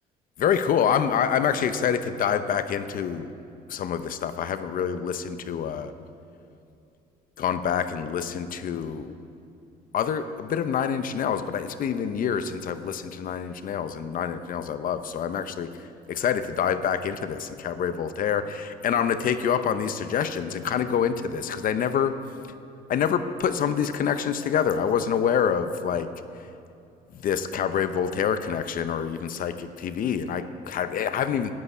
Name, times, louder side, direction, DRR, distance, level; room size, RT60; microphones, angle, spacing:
voice 1, 0.4-3.3 3.7-5.9 7.4-9.1 9.9-15.7 16.1-22.1 22.9-26.1 27.2-31.5, left 8 dB, 55° left, 11 dB, 0.8 m, -26 dB
10.5 x 10.5 x 8.5 m, 2.7 s
cardioid pair, 110°, 17 cm